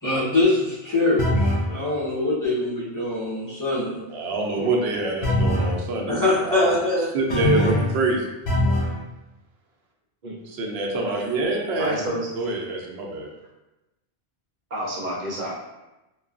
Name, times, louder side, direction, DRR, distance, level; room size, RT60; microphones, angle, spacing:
voice 1, 0.0-4.1 4.6-4.7 6.1-7.7, left 2 dB, 20° left, -11 dB, 0.9 m, -24 dB
sound 1, 1.2-1.7 5.2-5.8 7.3-8.0 8.5-9.0, left 1 dB, 80° left, 0.8 m, -21 dB
voice 2, 4.1-6.7 7.1-8.3 10.5-11.9 12.3-13.3, right 2 dB, 85° right, -1 dB, 0.9 m, -26 dB
voice 3, 11.8-12.3 14.7-15.5, equal, 50° right, -4 dB, 0.8 m, -29 dB
3.0 x 2.2 x 2.5 m, 1.0 s
omnidirectional pair, 1.0 m